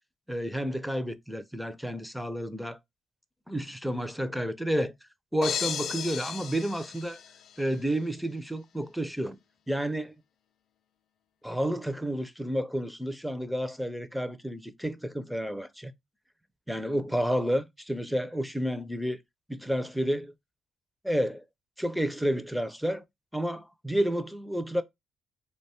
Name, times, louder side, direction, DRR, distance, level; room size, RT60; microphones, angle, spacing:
voice 1, 0.3-2.8 3.5-4.9 5.3-7.2 7.6-9.4 9.7-10.1 11.4-15.9 16.7-19.2 19.5-20.3 21.0-21.4 21.8-23.0 23.3-24.8, equal, ahead, 0.5 m, -30 dB
sound 1, 5.4-7.7, left 8 dB, 65° left, 0.3 m, -35 dB
3.0 x 2.2 x 4.1 m
cardioid pair, 90°, 0 cm